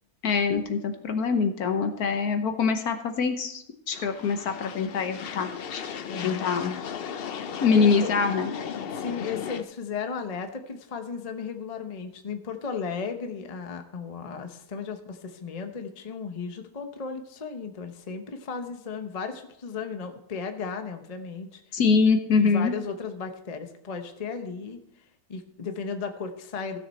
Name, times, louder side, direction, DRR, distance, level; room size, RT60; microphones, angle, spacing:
voice 1, 0.2-5.8 6.2-6.7 7.6-8.5 21.7-22.7, left 5 dB, 65° left, 7 dB, 1.4 m, -24 dB
sound 1, 3.9-9.6, left 7 dB, 85° left, 0.5 m, -36 dB
voice 2, 6.1-6.7 7.7-8.2 8.9-21.6 22.4-24.8 25.3-26.8, left 5 dB, 30° left, 6 dB, 0.8 m, -35 dB
15.5 x 6.7 x 4.2 m, 0.75 s
omnidirectional pair, 1.8 m